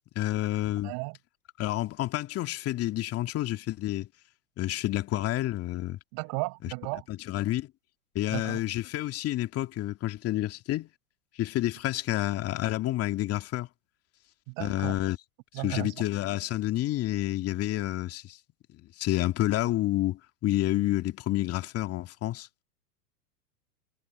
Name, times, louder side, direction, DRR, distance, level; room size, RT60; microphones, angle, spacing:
voice 1, 0.2-0.9 1.6-4.1 4.6-6.0 6.6-6.7 7.1-7.7 8.1-10.9 11.4-13.7 14.6-15.2 15.6-18.4 18.7-22.5, left 15 dB, 30° left, 2.4 m, -29 dB
voice 2, 0.8-1.2 6.1-7.1 8.3-8.6 14.5-15.0 15.5-15.9, right 40 dB or more, 45° right, 5.4 m, -35 dB
hypercardioid pair, 110°, 46 cm